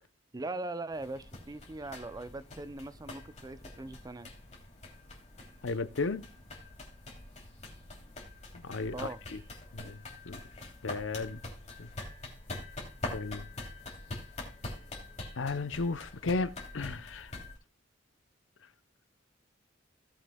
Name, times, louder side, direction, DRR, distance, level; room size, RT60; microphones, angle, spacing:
voice 1, 0.3-4.3 8.9-9.2, right 2 dB, 20° right, 0.5 m, -40 dB
sound 1, 0.9-17.6, left 2 dB, 35° left, 3.1 m, -45 dB
voice 2, 5.6-6.3 8.5-8.9 9.3-9.4 9.7-10.4 10.8-11.4 11.8-11.9 13.1-13.5 15.4-17.3, left 3 dB, 75° left, 0.7 m, -34 dB
17.5 x 7.6 x 2.3 m
head